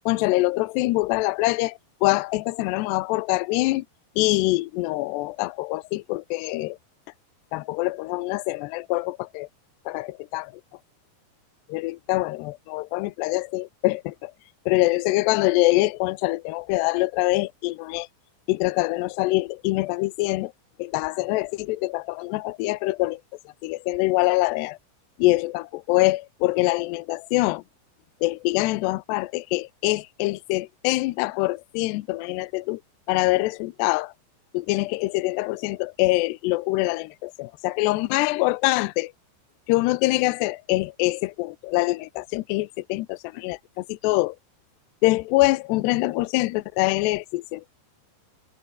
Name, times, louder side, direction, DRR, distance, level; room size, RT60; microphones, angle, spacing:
voice 1, 0.1-3.8 4.2-6.8 7.5-9.5 9.9-10.5 11.7-14.3 14.7-18.1 18.5-20.5 20.8-23.2 23.6-24.8 25.2-27.6 28.2-32.8 33.1-34.1 34.5-39.1 39.7-44.4 45.0-47.6, left 20 dB, 75° left, 2.6 m, -24 dB
omnidirectional pair, 5.4 m